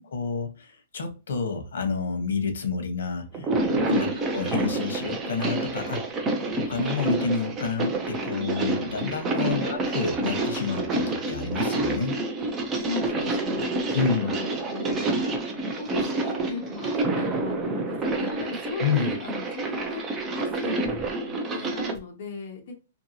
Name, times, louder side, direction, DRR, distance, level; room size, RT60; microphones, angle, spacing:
voice 1, 0.1-6.1 6.5-12.2 13.9-14.3 18.8-19.1, left 5 dB, 85° left, 0.8 m, -29 dB
sound 1, 3.3-22.0, right 2 dB, 15° right, 0.4 m, -28 dB
voice 2, 3.8-4.2 9.3-9.6 12.8-15.3 15.8-20.0 20.3-22.7, left 4 dB, 45° left, 0.8 m, -37 dB
2.7 x 2.7 x 2.7 m
hypercardioid pair, 175°, 0 cm